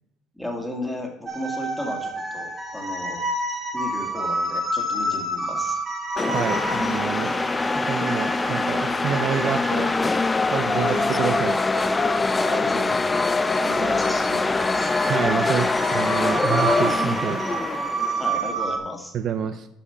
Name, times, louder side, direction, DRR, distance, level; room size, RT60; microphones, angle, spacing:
voice 1, 0.4-3.2 3.7-5.8 12.3-14.9 18.2-19.1, left 1 dB, 5° left, 1 dB, 2.0 m, -34 dB
sound 1, 1.3-18.8, right 2 dB, 30° right, 1.5 m, -30 dB
sound 2, 6.2-18.5, left 3 dB, 20° left, 0.3 m, -24 dB
voice 2, 6.3-7.3 7.9-9.9 10.5-11.6 15.1-17.4 19.1-19.7, right 8 dB, 50° right, 9 dB, 0.5 m, -27 dB
8.4 x 5.6 x 5.8 m, 0.84 s
cardioid pair, 120°, 0 cm